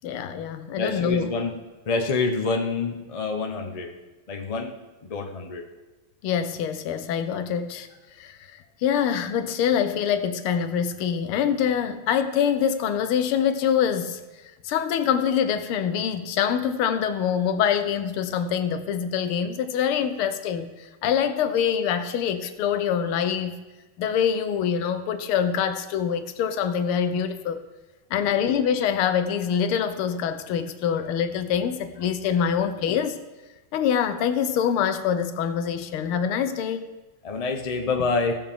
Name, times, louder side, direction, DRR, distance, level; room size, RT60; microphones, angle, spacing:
voice 1, 0.0-1.3 6.2-7.9 8.2-8.4 8.8-14.2 14.6-20.7 21.0-23.6 24.0-27.6 28.1-33.2 33.7-36.8, left 8 dB, 90° left, 10 dB, 1.6 m, -25 dB
voice 2, 0.7-1.5 1.9-3.9 4.3-4.7 5.0-5.7 28.2-28.4 37.2-38.3, left 4 dB, 45° left, 3 dB, 0.4 m, -27 dB
16.0 x 7.1 x 3.7 m, 1.2 s
omnidirectional pair, 2.3 m